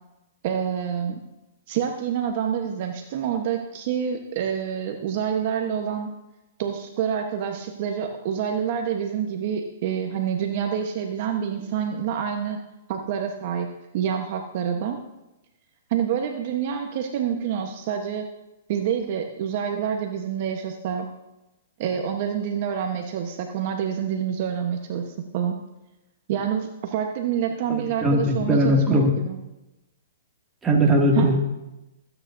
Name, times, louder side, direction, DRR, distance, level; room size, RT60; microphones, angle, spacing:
voice 1, 0.4-1.2 1.7-6.1 6.6-12.6 12.9-13.7 13.9-15.0 15.9-18.3 18.7-21.1 21.8-25.6 26.3-29.4 31.1-31.3, right 8 dB, 50° right, 4 dB, 1.1 m, -27 dB
voice 2, 27.7-29.1 30.6-31.4, equal, 10° right, -1 dB, 2.2 m, -20 dB
20.5 x 9.2 x 2.7 m, 0.96 s
hypercardioid pair, 130°, 0 cm